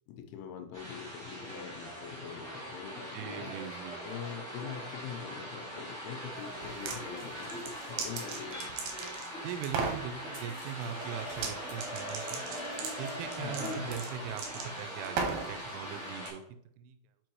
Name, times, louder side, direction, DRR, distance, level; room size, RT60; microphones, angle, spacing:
voice 1, 0.1-3.5 4.0-8.7 13.4-13.9, left 8 dB, 80° left, 5 dB, 3.2 m, -44 dB
sound 1, 0.7-16.3, equal, 30° right, 1.9 m, -41 dB
voice 2, 3.1-4.0 9.4-12.5 13.0-16.4 16.8-17.0, right 8 dB, 85° right, 10 dB, 3.0 m, -41 dB
sound 2, 6.6-7.0 7.4-9.3 9.6-10.0 11.3-11.5 11.8-15.5, right 5 dB, 70° right, 2.5 m, -36 dB
sound 3, 7.0-8.5 9.4-11.9 12.2-13.7 14.1-14.5 15.2-15.4 16.2-16.4, right 2 dB, 50° right, 2.0 m, -56 dB
6.3 x 5.3 x 4.6 m, 0.72 s
omnidirectional pair, 5.5 m